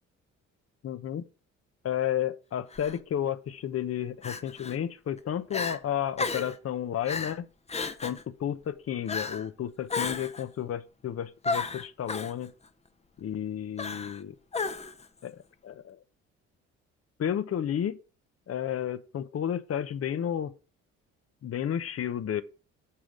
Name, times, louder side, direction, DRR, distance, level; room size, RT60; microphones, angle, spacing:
voice 1, 0.8-1.2 1.8-7.5 8.0-12.5 13.2-14.4 15.2-16.0 17.2-18.0 18.5-20.5 21.4-22.4, left 10 dB, 50° left, 0.8 m, -32 dB
Crying sobbing, 2.7-3.0 4.2-4.8 5.2-5.3 5.5-5.8 6.2-6.6 7.1-7.4 7.7-8.2 9.1-9.5 9.9-10.4 11.4-12.3 13.8-14.2 14.5-15.1, left 4 dB, 20° left, 0.8 m, -33 dB
8.5 x 3.7 x 6.4 m
cardioid pair, 90°, 30 cm